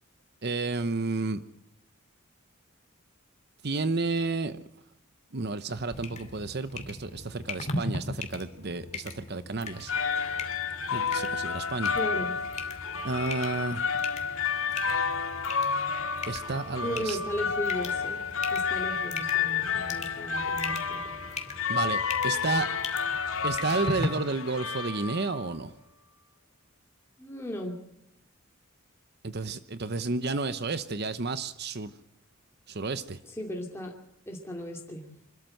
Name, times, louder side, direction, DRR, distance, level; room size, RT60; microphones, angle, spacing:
voice 1, 0.4-1.4 3.6-4.6 5.3-9.9 10.9-12.0 13.0-13.9 16.3-17.2 21.7-22.7 23.4-25.7 29.2-31.9 32.7-33.2, right 3 dB, 50° right, 12 dB, 0.9 m, -31 dB
sound 1, 5.9-24.1, left 2 dB, 35° left, 2.6 m, -40 dB
sound 2, 9.7-25.5, left 6 dB, 80° left, 1.9 m, -30 dB
voice 2, 12.0-12.3 16.8-18.2 18.5-21.0 27.2-27.8 33.2-33.9 34.3-35.0, equal, 10° left, 0 dB, 2.5 m, -36 dB
25.5 x 13.5 x 7.7 m, 0.79 s
head